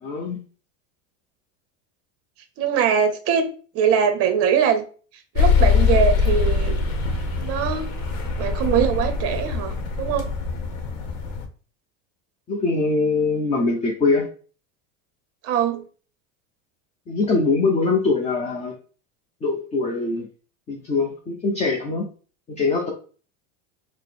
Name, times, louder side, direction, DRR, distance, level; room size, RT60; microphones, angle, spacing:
voice 1, 0.0-0.4 12.5-14.3 17.1-18.7 19.4-20.3 20.7-22.1 22.5-22.9, left 3 dB, 20° left, 0 dB, 0.5 m, -22 dB
voice 2, 2.6-3.5 3.7-4.8 5.3-6.8 7.4-7.9 8.4-10.3 15.4-15.8, right 7 dB, 40° right, 8 dB, 0.7 m, -22 dB
sound 1, 5.4-11.5, left 5 dB, 80° left, 0.9 m, -22 dB
4.8 x 2.0 x 3.2 m, 0.39 s
supercardioid pair, 135°, 37 cm